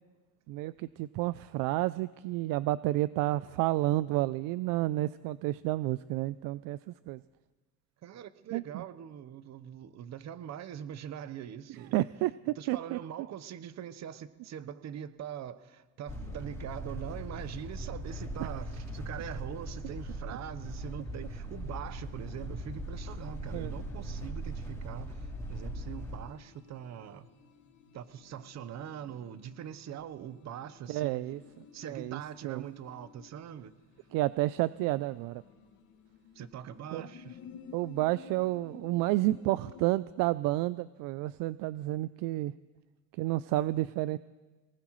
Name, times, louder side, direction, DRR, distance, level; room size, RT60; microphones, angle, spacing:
voice 1, 0.5-7.2 8.5-8.8 11.9-13.0 23.5-23.7 30.9-31.4 31.8-32.6 34.1-35.4 36.9-37.0 37.7-42.5 43.2-44.2, right 17 dB, 65° right, 17 dB, 0.5 m, -30 dB
voice 2, 8.0-12.1 12.6-27.3 27.9-31.2 31.7-33.7 36.3-37.4, right 9 dB, 50° right, 13 dB, 1.0 m, -43 dB
sound 1, 16.1-26.2, right 1 dB, 10° left, 3.5 m, -40 dB
sound 2, 20.6-39.9, left 6 dB, 55° left, 2.3 m, -55 dB
23.0 x 19.5 x 3.2 m, 1.3 s
supercardioid pair, 105°, 36 cm